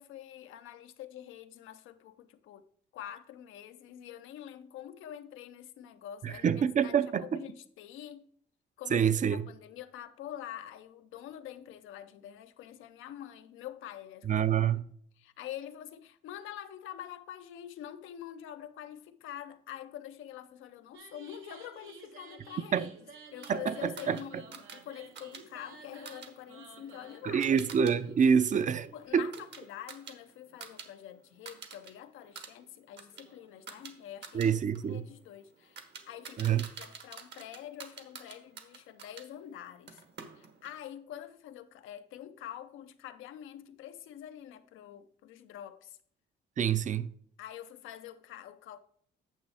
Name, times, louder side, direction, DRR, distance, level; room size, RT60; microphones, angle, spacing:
voice 1, 0.0-2.7 2.9-7.0 7.2-8.3 8.8-14.4 15.2-22.9 23.3-27.4 28.9-34.5 34.8-40.1 40.4-46.0 47.4-48.8, left 11 dB, 90° left, 0.6 m, -46 dB
voice 2, 6.2-7.4 8.9-9.4 14.2-14.8 22.7-22.9 23.5-24.2 27.2-29.3 34.3-35.0 36.4-36.7 46.6-47.1, right 7 dB, 40° right, 0.5 m, -27 dB
sound 1, 20.9-29.1, right 5 dB, 85° right, 1.1 m, -53 dB
sound 2, 23.4-28.0 28.3-30.9 31.2-31.9 32.2-39.3 39.9-40.8, right 6 dB, 60° right, 1.2 m, -49 dB
9.0 x 6.8 x 3.5 m
cardioid pair, 90°, 20 cm